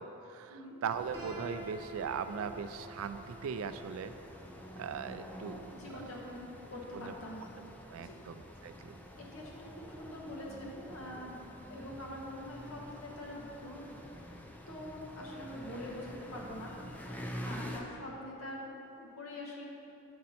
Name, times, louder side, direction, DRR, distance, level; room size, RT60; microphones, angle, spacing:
voice 1, 0.0-4.1 4.8-6.0 6.9-7.1 7.9-9.0, right 6 dB, 70° right, 11 dB, 0.3 m, -39 dB
sound 1, 0.9-17.8, equal, 10° left, 0.4 m, -48 dB
Piano, 1.1-7.0, right 1 dB, 15° right, 1.4 m, -50 dB
voice 2, 5.7-7.4 8.0-8.2 8.6-8.8 9.2-11.4 11.7-13.8 14.7-19.6, left 1 dB, 70° left, -3 dB, 1.2 m, -45 dB
7.6 x 4.2 x 4.2 m, 2.9 s
head